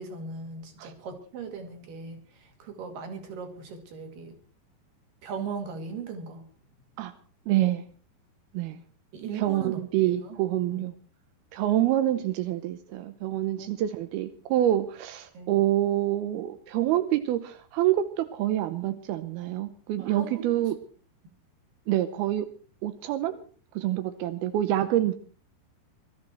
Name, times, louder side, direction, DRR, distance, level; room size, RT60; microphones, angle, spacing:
voice 1, 0.0-4.4 5.2-6.5 9.1-10.4 10.7-10.8 13.6-13.7 15.3-15.5 20.0-20.5, right 5 dB, 55° right, 6 dB, 3.6 m, -39 dB
voice 2, 7.5-7.9 8.5-8.8 9.3-10.9 11.5-20.7 21.9-22.5 22.8-23.4 23.8-25.1, right 13 dB, 80° right, 9 dB, 2.4 m, -26 dB
21.0 x 13.5 x 4.5 m, 0.40 s
omnidirectional pair, 5.4 m